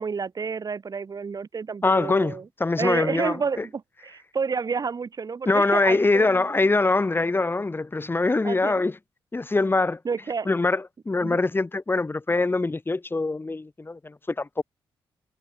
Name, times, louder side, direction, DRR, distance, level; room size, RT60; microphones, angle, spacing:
voice 1, 0.0-2.4 2.8-6.5 8.4-8.8 10.0-10.5 11.2-11.4, right 5 dB, 45° right, 7.6 m, -30 dB
voice 2, 1.8-3.6 5.4-8.9 9.3-10.0 10.4-14.6, left 3 dB, 25° left, 3.4 m, -23 dB
cardioid pair, 70°, 9 cm